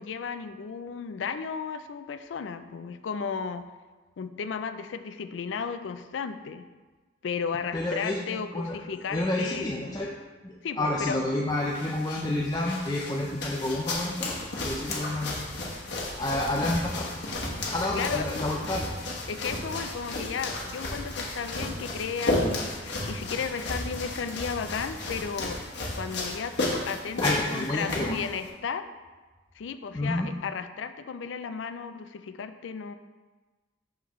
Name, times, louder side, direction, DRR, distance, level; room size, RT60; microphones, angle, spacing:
voice 1, 0.0-3.7 4.2-6.7 7.2-10.0 10.6-11.2 17.9-18.3 19.3-25.6 25.9-28.9 29.6-32.9, left 6 dB, 80° left, 10 dB, 0.4 m, -34 dB
voice 2, 7.7-10.1 10.4-14.4 14.6-15.4 16.2-17.2 17.7-18.9 27.2-28.2 29.9-30.3, left 1 dB, 20° left, -2 dB, 0.5 m, -29 dB
sound 1, 11.5-28.5, left 2 dB, 65° left, 1.3 m, -33 dB
6.2 x 5.7 x 3.1 m, 1.3 s
head